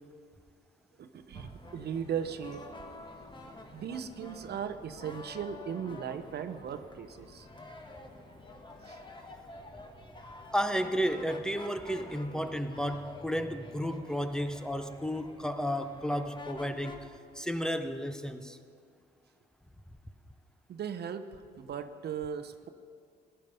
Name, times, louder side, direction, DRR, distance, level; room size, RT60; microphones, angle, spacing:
voice 1, 1.0-2.6 3.7-7.5 8.9-9.0 20.7-22.7, right 7 dB, 60° right, 10 dB, 0.8 m, -37 dB
sound 1, 1.3-17.1, left 2 dB, 25° left, 1.5 m, -49 dB
voice 2, 10.5-17.1 17.3-18.6, equal, 5° left, 7 dB, 0.8 m, -32 dB
16.0 x 9.9 x 5.5 m, 2.2 s
supercardioid pair, 65°, 19 cm